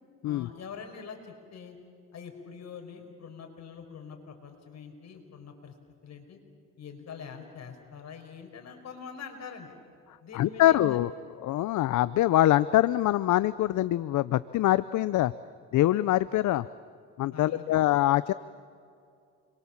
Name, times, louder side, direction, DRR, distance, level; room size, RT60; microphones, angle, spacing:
voice 1, 0.2-1.8 2.1-5.7 6.0-6.4 6.8-9.7 10.2-11.0 17.3-17.8, left 6 dB, 60° left, 4 dB, 5.1 m, -44 dB
voice 2, 10.3-11.1 11.4-15.3 15.7-16.6 17.2-18.3, left 14 dB, 75° left, 16 dB, 0.6 m, -24 dB
30.0 x 23.0 x 7.3 m, 2.4 s
cardioid pair, 90°, 30 cm